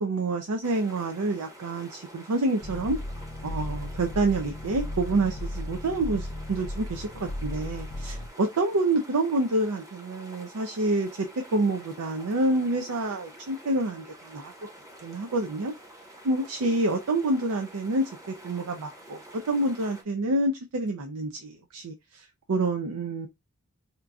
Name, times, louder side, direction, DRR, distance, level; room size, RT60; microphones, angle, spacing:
voice 1, 0.0-3.0 3.4-14.5 15.0-15.7 16.2-23.3, right 2 dB, 85° right, 0.5 m, -28 dB
sound 1, 0.6-20.0, right 1 dB, 15° right, 0.7 m, -49 dB
sound 2, 2.6-8.3, left 1 dB, 45° left, 0.4 m, -35 dB
4.4 x 2.5 x 2.3 m
head